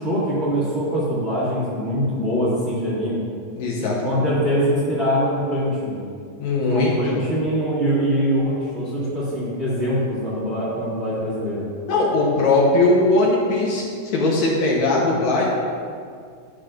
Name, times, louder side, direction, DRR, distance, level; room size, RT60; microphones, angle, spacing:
voice 1, 0.0-3.2 3.8-6.0 6.7-11.6, equal, 25° right, -10 dB, 1.6 m, -23 dB
voice 2, 3.6-4.2 6.4-7.3 11.9-15.5, left 2 dB, 65° left, -3 dB, 2.1 m, -20 dB
11.5 x 6.4 x 2.5 m, 2.2 s
omnidirectional pair, 4.0 m